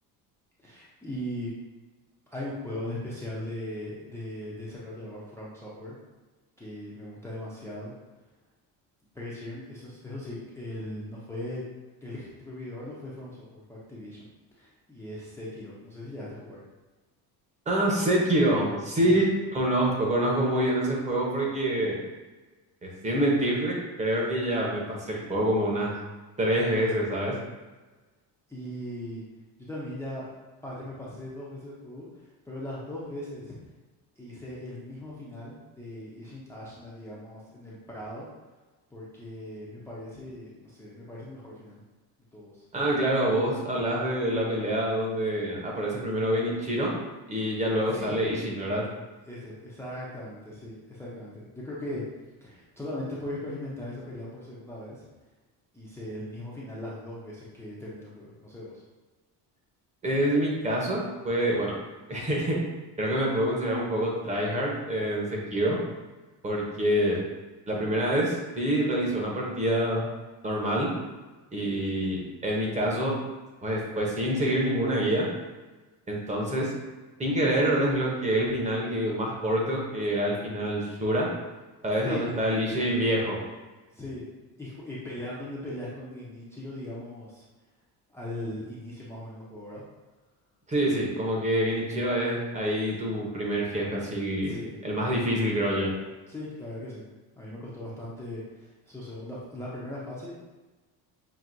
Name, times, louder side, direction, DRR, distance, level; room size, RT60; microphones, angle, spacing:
voice 1, 0.6-1.5 2.3-6.0 6.6-7.9 9.1-11.6 12.0-14.3 14.6-16.6 19.0-19.2 28.5-29.2 29.6-30.3 30.6-33.5 34.2-38.3 38.9-41.8 42.3-42.6 47.9-48.2 49.3-52.1 52.4-55.1 55.7-58.8 71.6-71.8 82.0-82.3 83.9-84.2 84.6-87.5 88.1-89.8 94.4-94.7 96.3-97.0 97.4-100.3, left 1 dB, 5° left, -7 dB, 0.4 m, -39 dB
voice 2, 17.7-19.3 19.5-22.0 22.8-25.9 26.4-27.3 42.7-46.9 47.3-48.8 60.0-61.7 62.1-62.6 63.0-65.8 66.4-67.2 67.7-70.1 70.4-70.9 71.5-73.1 73.6-75.3 76.1-76.7 77.2-81.3 81.8-83.4 90.7-94.5 94.8-95.9, right 1 dB, 20° right, -2 dB, 0.8 m, -26 dB
5.8 x 2.6 x 2.5 m, 1.2 s
cardioid pair, 165°, 40 cm